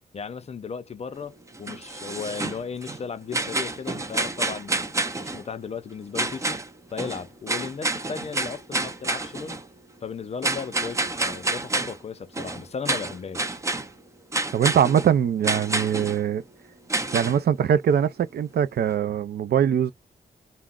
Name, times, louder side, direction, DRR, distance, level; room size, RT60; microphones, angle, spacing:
voice 1, 0.1-6.6 6.9-9.6 10.0-13.6, left 6 dB, 40° left, 0.4 m, -36 dB
sound 1, 1.5-3.0 3.3-5.4 6.2-6.7 7.0-9.7 10.4-12.0 12.3-13.9 14.3-15.1 15.4-16.2 16.9-17.4, right 2 dB, 20° right, 0.4 m, -28 dB
voice 2, 14.5-16.4 17.1-19.9, right 8 dB, 75° right, 0.4 m, -22 dB
2.3 x 2.0 x 3.5 m
wide cardioid pair, 115°, 17 cm